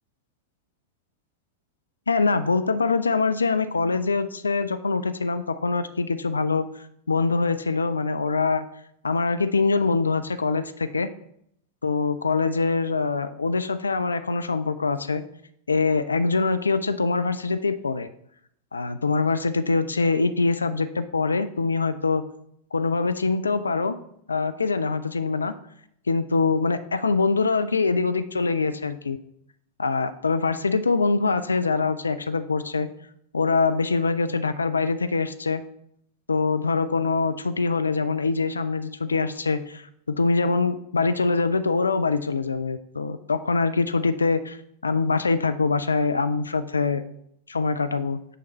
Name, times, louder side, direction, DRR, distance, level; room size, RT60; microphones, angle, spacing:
voice 1, 2.1-8.6 9.0-11.1 11.8-15.2 15.7-18.1 18.7-22.2 22.7-24.0 24.3-25.5 26.1-29.2 29.8-32.9 33.3-35.6 36.3-44.6 44.8-47.0 47.5-48.2, left 4 dB, 75° left, 11 dB, 0.3 m, -24 dB
6.6 x 5.1 x 4.3 m, 0.72 s
figure-of-eight pair, 90°, 0 cm